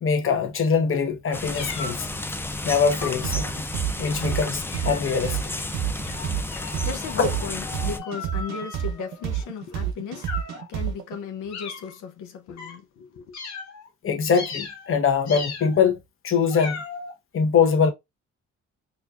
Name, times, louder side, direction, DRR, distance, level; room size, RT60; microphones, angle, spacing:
voice 1, 0.0-2.1 2.6-3.6 4.0-5.4 7.2-7.3 14.0-16.0 16.2-16.8 17.3-17.9, left 6 dB, 45° left, 1.0 m, -22 dB
sound 1, 1.3-8.0, left 2 dB, 10° left, 0.4 m, -32 dB
sound 2, 1.5-2.2 2.9-3.3 3.9-4.3 4.7-5.4 6.0-9.5 10.2-10.7 11.5-12.0 12.6-12.8 13.3-13.9 14.3-15.0 15.3-15.8 16.5-17.1, left 5 dB, 65° left, 1.3 m, -38 dB
sound 3, 3.2-11.2, right 10 dB, 65° right, 0.6 m, -29 dB
voice 2, 6.8-10.3 10.7-13.3, left 5 dB, 85° left, 0.7 m, -35 dB
4.2 x 2.6 x 2.4 m
cardioid pair, 90°, 30 cm